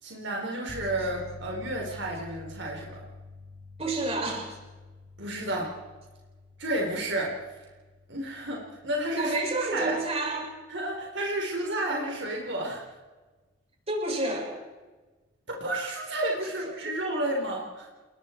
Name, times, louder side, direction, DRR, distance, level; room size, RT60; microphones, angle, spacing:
voice 1, 0.0-3.0 5.2-5.7 6.6-7.4 8.1-9.4 9.7-10.0 10.7-12.8 15.5-17.9, right 1 dB, 65° right, -1 dB, 4.3 m, -31 dB
sound 1, 0.7-11.2, left 3 dB, 85° right, 5.5 m, -48 dB
voice 2, 3.8-4.6 9.1-10.5 13.9-14.5 16.8-17.0, right 2 dB, 35° right, -1 dB, 6.5 m, -29 dB
29.5 x 21.5 x 4.6 m, 1.2 s
head